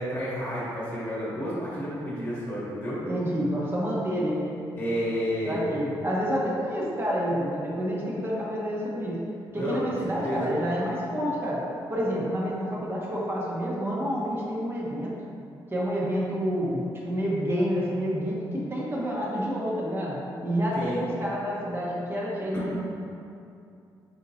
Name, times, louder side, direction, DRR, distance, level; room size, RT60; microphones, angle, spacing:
voice 1, 0.0-3.0 4.7-5.6 9.5-10.6 20.7-21.0 22.5-22.8, equal, 20° left, -7 dB, 1.3 m, -31 dB
voice 2, 3.1-4.5 5.5-9.2 9.5-11.6 11.9-15.1 15.7-18.4 18.7-20.2 20.4-22.8, equal, 25° right, -5 dB, 1.0 m, -28 dB
4.2 x 3.6 x 2.8 m, 2.6 s
cardioid pair, 85°, 8 cm